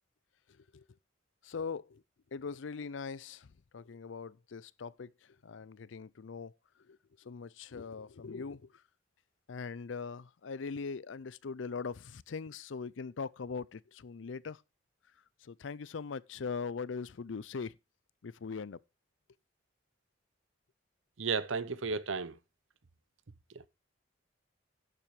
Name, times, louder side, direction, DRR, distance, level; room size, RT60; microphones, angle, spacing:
voice 1, 0.5-0.8 1.4-2.0 2.3-3.5 3.7-8.8 9.5-14.6 15.4-17.8 18.2-18.8, left 5 dB, 75° left, 0.5 m, -41 dB
voice 2, 21.2-22.4 23.5-23.6, right 4 dB, 90° right, 0.8 m, -34 dB
11.0 x 7.5 x 4.8 m
head